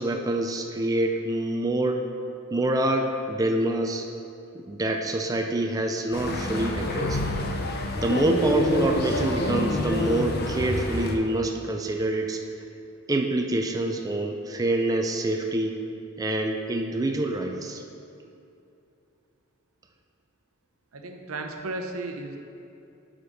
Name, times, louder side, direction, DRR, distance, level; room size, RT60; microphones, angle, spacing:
voice 1, 0.0-2.0 2.5-4.1 4.5-7.2 7.9-12.4 13.1-15.8 16.2-17.8, right 2 dB, 15° right, 3 dB, 0.4 m, -26 dB
sound 1, 6.1-11.1, left 2 dB, 50° left, 0.7 m, -27 dB
voice 2, 20.9-22.4, right 2 dB, 85° right, 4 dB, 0.8 m, -34 dB
9.0 x 5.1 x 5.2 m, 2.7 s
head